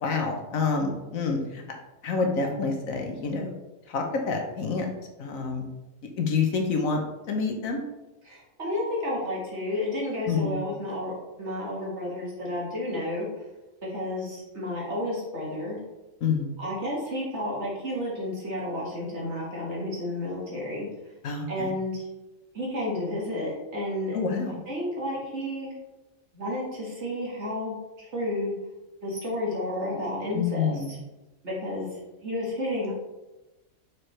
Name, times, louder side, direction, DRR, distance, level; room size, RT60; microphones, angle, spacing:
voice 1, 0.0-1.6 2.0-3.6 3.9-4.9 5.2-5.7 6.2-7.0 7.3-7.8 10.3-10.5 16.2-16.5 21.2-21.7 24.1-24.6 30.3-31.0, left 4 dB, 75° left, 2 dB, 1.3 m, -27 dB
voice 2, 8.2-11.1 11.4-13.3 13.8-15.8 16.6-20.9 21.5-22.0 22.5-24.2 24.7-25.7 26.3-28.5 29.0-31.0 31.4-32.9, left 1 dB, 55° right, -5 dB, 2.0 m, -31 dB
6.2 x 4.6 x 3.2 m, 1.0 s
omnidirectional pair, 1.4 m